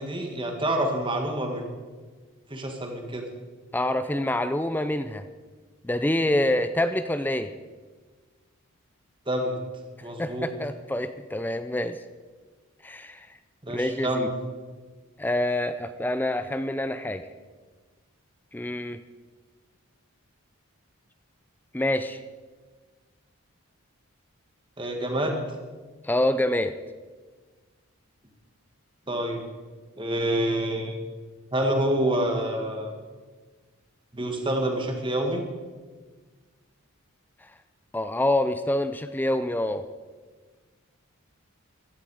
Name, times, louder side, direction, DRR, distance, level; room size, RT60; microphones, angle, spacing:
voice 1, 0.0-1.7 2.5-3.3 9.3-9.6 10.0-10.5 13.6-14.3 24.8-25.4 29.1-29.5 30.0-31.0 31.5-32.9 34.1-35.4, right 1 dB, 20° right, 3 dB, 1.8 m, -27 dB
voice 2, 3.7-5.2 5.8-7.5 10.2-12.0 12.8-13.3 13.7-14.3 15.2-17.3 18.5-19.0 21.7-22.2 26.0-26.8 37.4-37.5 37.9-39.8, left 1 dB, 10° left, 11 dB, 0.4 m, -26 dB
16.0 x 12.0 x 4.9 m, 1.4 s
head